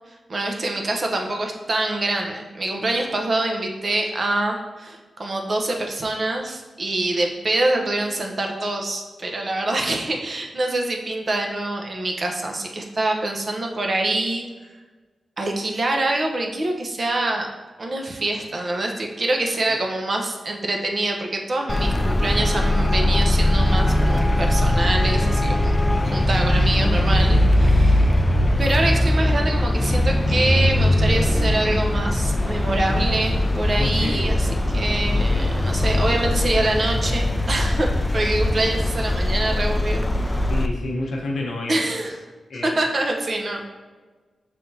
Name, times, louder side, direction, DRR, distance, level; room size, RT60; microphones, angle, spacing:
voice 1, 0.3-14.4 15.4-17.5 17.8-25.8 26.1-28.1 28.6-40.0 40.3-40.4 41.7-42.2 42.6-43.7, right 2 dB, 50° right, 2 dB, 0.7 m, -25 dB
Traffic noise roadway noise, 21.7-40.7, left 1 dB, 20° left, 0.3 m, -20 dB
voice 2, 33.8-34.3 35.3-35.5 35.9-36.2 40.5-41.8 42.5-42.8, left 2 dB, 90° left, -1 dB, 0.8 m, -30 dB
5.6 x 3.4 x 2.7 m, 1.3 s
cardioid pair, 70°, 0 cm